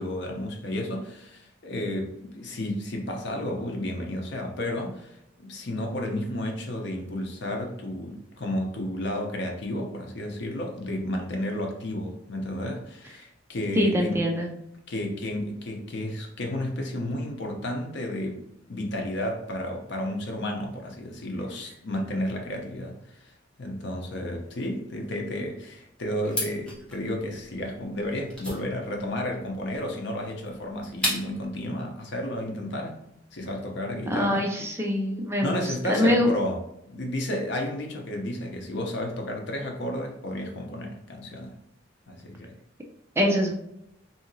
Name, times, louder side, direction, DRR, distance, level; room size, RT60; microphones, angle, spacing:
voice 1, 0.0-14.2 14.9-18.4 18.7-23.0 23.2-23.3 23.6-33.0 33.3-34.5 35.4-36.6 36.9-41.6 42.1-42.5, left 1 dB, 60° left, 1 dB, 0.7 m, -32 dB
voice 2, 13.7-14.5 34.1-36.3 43.2-43.5, left 1 dB, 15° right, 0 dB, 0.4 m, -24 dB
sound 1, 26.2-31.5, left 1 dB, 5° left, 0.8 m, -34 dB
2.8 x 2.7 x 2.6 m, 0.80 s
head